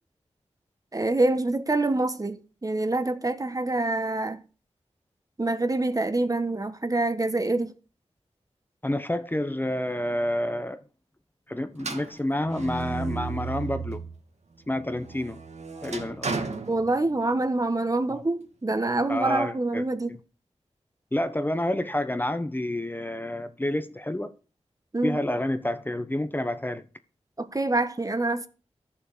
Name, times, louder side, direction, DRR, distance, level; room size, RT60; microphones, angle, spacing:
voice 1, 0.9-4.4 5.4-7.7 16.7-20.2 24.9-25.2 27.4-28.5, right 2 dB, 30° right, 1.4 m, -26 dB
voice 2, 8.8-10.8 11.5-14.0 14.7-15.4 15.8-16.5 19.1-20.2 21.1-24.3 25.0-26.8, left 1 dB, 15° left, 1.1 m, -29 dB
sound 1, 11.8-14.2 14.6-17.5, right 4 dB, 80° right, 2.5 m, -34 dB
14.0 x 7.2 x 6.8 m
wide cardioid pair, 80°, 11 cm